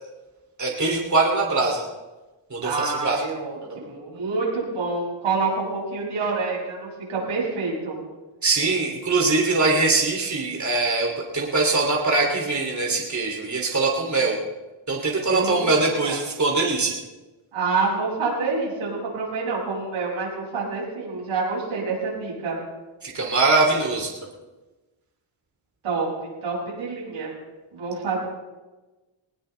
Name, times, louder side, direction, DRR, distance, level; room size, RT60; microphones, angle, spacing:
voice 1, 0.6-1.9 2.5-3.2 3.7-3.9 8.4-14.4 14.9-16.9 23.0-24.1, right 3 dB, 35° right, 0 dB, 3.1 m, -22 dB
voice 2, 2.6-8.0 15.3-16.2 17.5-22.6 25.8-26.1 26.4-27.3 27.7-28.3, right 4 dB, 90° right, -4 dB, 7.1 m, -27 dB
20.0 x 18.5 x 3.4 m, 1.2 s
cardioid pair, 70°, 48 cm